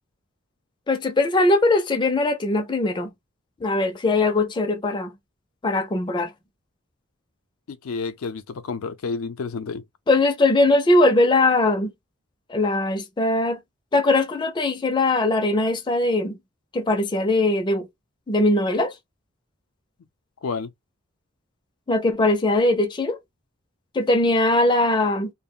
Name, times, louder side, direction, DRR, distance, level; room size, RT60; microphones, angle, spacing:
voice 1, 0.9-3.1 3.6-5.1 5.6-6.3 10.1-11.9 12.5-13.6 13.9-16.4 16.7-17.9 18.3-18.9 21.9-23.2 23.9-25.3, left 2 dB, 20° left, 0.4 m, -20 dB
voice 2, 7.7-9.8 20.4-20.7, left 4 dB, 90° left, 0.4 m, -30 dB
2.3 x 2.0 x 3.6 m
head